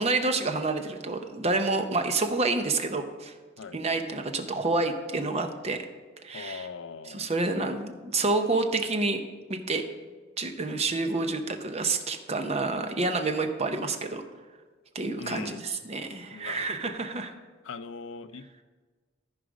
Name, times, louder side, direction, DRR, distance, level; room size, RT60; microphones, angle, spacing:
voice 1, 0.0-3.3 3.7-5.8 6.2-6.7 7.1-9.2 9.5-9.8 10.4-14.2 14.9-17.3, right 3 dB, 30° right, 6 dB, 0.7 m, -28 dB
voice 2, 6.3-7.3 15.2-15.6 16.3-17.0 17.6-18.6, left 5 dB, 70° left, 10 dB, 0.5 m, -40 dB
13.5 x 4.9 x 5.1 m, 1.4 s
head